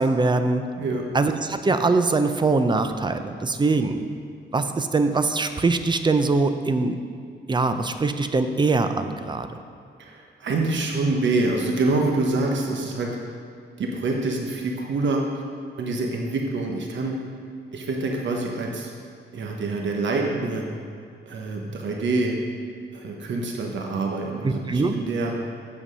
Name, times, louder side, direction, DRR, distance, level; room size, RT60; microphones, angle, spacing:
voice 1, 0.0-0.6 1.1-4.0 4.5-7.0 7.5-9.5 24.4-24.9, right 3 dB, 25° right, 8 dB, 0.5 m, -22 dB
voice 2, 10.0-13.1 13.8-15.2 15.8-17.2 17.7-18.9 19.3-20.7 21.3-22.3 22.9-25.3, right 3 dB, 75° right, 0 dB, 1.1 m, -26 dB
8.8 x 7.1 x 5.5 m, 2.4 s
wide cardioid pair, 120°, 19 cm